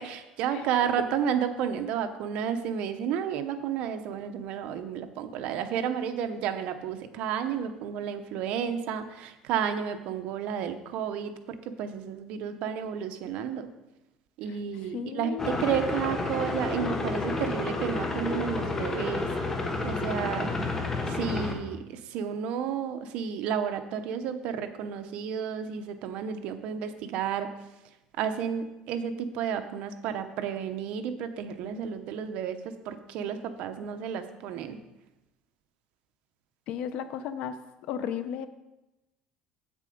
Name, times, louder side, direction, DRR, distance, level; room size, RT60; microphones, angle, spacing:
voice 1, 0.0-13.7 14.4-19.3 19.8-20.7 21.0-27.5 28.2-34.8, right 8 dB, 65° right, 8 dB, 0.9 m, -32 dB
voice 2, 14.5-15.7 36.7-37.6 37.8-38.5, left 8 dB, 65° left, 11 dB, 0.7 m, -35 dB
sound 1, 15.4-21.5, left 2 dB, 20° left, 1.2 m, -30 dB
8.5 x 7.4 x 5.1 m, 0.99 s
cardioid pair, 135°, 2 cm